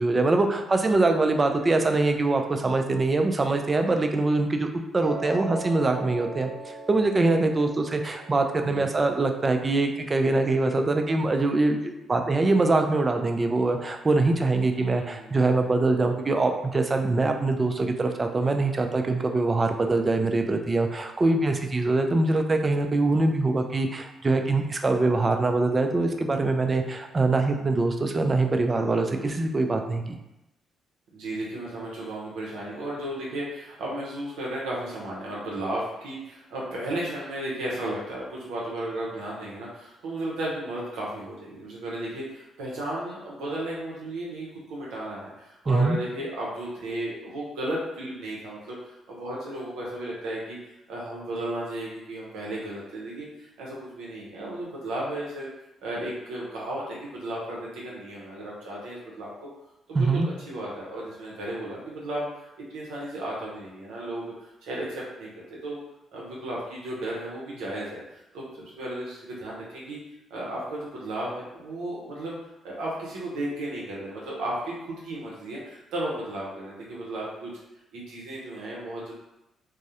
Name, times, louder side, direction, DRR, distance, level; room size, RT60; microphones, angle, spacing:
voice 1, 0.0-4.7 4.9-30.1 45.7-46.0 59.9-60.3, right 2 dB, 35° right, 5 dB, 0.3 m, -23 dB
Piano, 5.0-11.1, right 2 dB, 30° left, 0.7 m, -41 dB
voice 2, 14.7-15.3 31.1-50.6 50.9-55.5 55.8-59.3 59.9-65.8 66.1-70.0 70.3-72.4 72.6-77.5 77.9-79.1, right 1 dB, 85° right, -5 dB, 0.6 m, -34 dB
2.3 x 2.0 x 2.7 m, 0.92 s
supercardioid pair, 65°, 0 cm